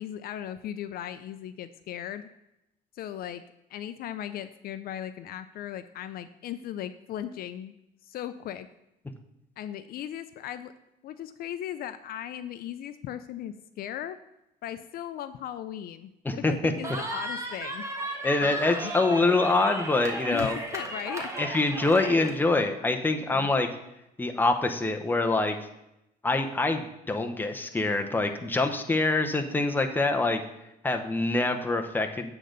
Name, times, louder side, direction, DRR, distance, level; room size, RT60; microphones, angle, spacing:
voice 1, 0.0-2.3 2.9-3.4 3.7-7.7 8.0-8.7 9.6-10.7 11.0-14.2 14.6-17.9 18.4-18.9 20.3-21.3 23.3-23.5, left 11 dB, 65° left, 12 dB, 0.4 m, -37 dB
voice 2, 16.2-16.7 18.2-20.6 21.4-23.7 24.2-25.6 26.2-30.4 30.8-32.3, left 2 dB, 10° left, 4 dB, 0.8 m, -25 dB
Cheering, 16.8-22.3, right 1 dB, 15° right, 1.4 m, -35 dB
8.4 x 3.9 x 6.6 m, 0.87 s
cardioid pair, 110°, 17 cm